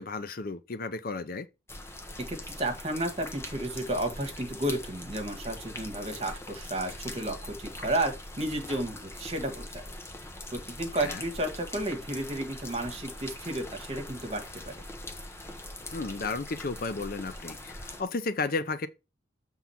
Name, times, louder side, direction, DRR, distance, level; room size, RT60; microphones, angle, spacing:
voice 1, 0.0-1.5 11.0-11.2 15.9-18.9, left 3 dB, 45° left, 0.5 m, -33 dB
sound 1, 1.7-18.0, left 1 dB, 15° left, 0.8 m, -42 dB
voice 2, 2.3-9.8 10.5-14.8, right 1 dB, 30° right, 1.6 m, -32 dB
7.2 x 3.8 x 5.7 m
head